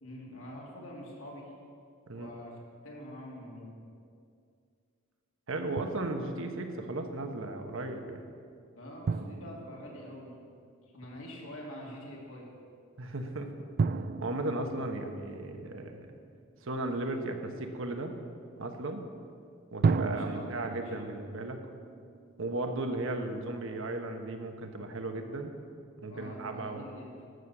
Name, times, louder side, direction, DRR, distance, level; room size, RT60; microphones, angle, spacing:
voice 1, 0.0-1.5 2.1-2.5 2.8-3.8 8.8-10.3 10.9-12.5 20.1-20.9 26.0-27.1, equal, 70° left, -2 dB, 2.7 m, -45 dB
voice 2, 5.5-8.2 13.0-13.5 14.2-16.1 16.6-18.1 18.6-19.0 19.7-21.6 22.4-25.5 26.0-26.9, right 2 dB, 65° right, 5 dB, 1.2 m, -35 dB
Drum, 5.8-6.5 9.1-10.8 13.8-16.3 19.8-23.0, right 4 dB, 45° right, 0.4 m, -34 dB
13.0 x 6.5 x 7.1 m, 2.3 s
head